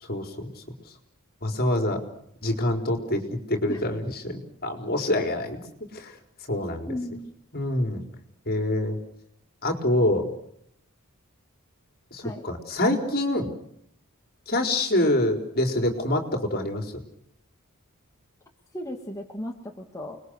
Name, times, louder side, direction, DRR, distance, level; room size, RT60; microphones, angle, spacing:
voice 1, 0.0-0.5 1.4-2.0 2.4-5.6 5.9-6.2 6.5-7.0 7.5-8.0 8.5-9.0 9.6-10.3 12.1-13.5 14.5-16.9, left 1 dB, 45° left, 4 dB, 4.4 m, -26 dB
voice 2, 6.9-7.3 12.2-12.4 18.7-20.2, left 1 dB, 15° left, 1 dB, 2.4 m, -35 dB
29.5 x 21.5 x 6.7 m, 0.71 s
head